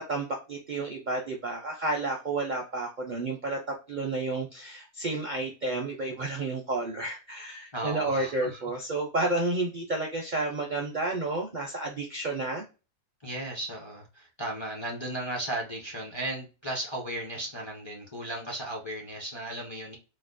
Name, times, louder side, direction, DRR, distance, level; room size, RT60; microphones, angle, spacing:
voice 1, 0.0-12.6, right 2 dB, 60° right, 0 dB, 0.5 m, -31 dB
voice 2, 7.7-8.6 13.2-20.0, right 1 dB, 40° left, -2 dB, 0.4 m, -35 dB
4.0 x 2.1 x 2.5 m, 0.31 s
omnidirectional pair, 1.6 m